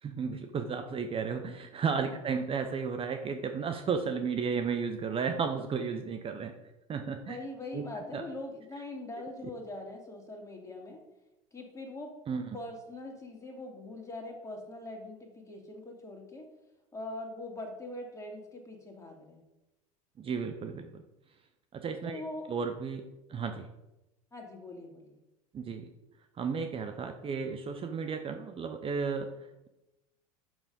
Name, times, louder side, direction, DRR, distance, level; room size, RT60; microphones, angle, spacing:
voice 1, 0.0-6.6 6.9-7.4 7.7-8.2 12.3-12.6 20.2-21.0 21.3-21.4 21.7-22.2 22.5-23.7 25.5-25.9 26.3-29.7, right 5 dB, 30° right, 6 dB, 0.8 m, -34 dB
voice 2, 7.3-11.0 11.5-12.1 12.5-16.4 16.9-19.4 22.0-22.4 24.3-25.2, left 2 dB, 20° left, 1 dB, 2.5 m, -42 dB
6.3 x 6.2 x 5.2 m, 0.94 s
hypercardioid pair, 80°, 17 cm